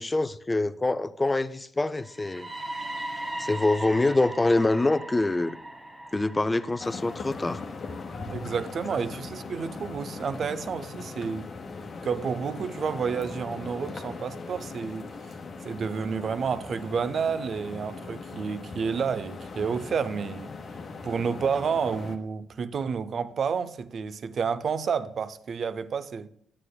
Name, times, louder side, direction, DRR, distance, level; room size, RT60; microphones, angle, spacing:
voice 1, 0.0-2.5 3.4-5.6 6.1-7.6, left 2 dB, 20° left, 0.5 m, -25 dB
sound 1, 2.0-9.9, right 1 dB, 20° right, 1.3 m, -39 dB
sound 2, 6.8-22.2, left 4 dB, 45° left, 1.0 m, -39 dB
voice 2, 8.3-11.5 12.0-15.1 15.6-20.5 21.0-26.3, right 6 dB, 50° right, 0.6 m, -30 dB
9.6 x 8.8 x 2.3 m
cardioid pair, 85°, 0 cm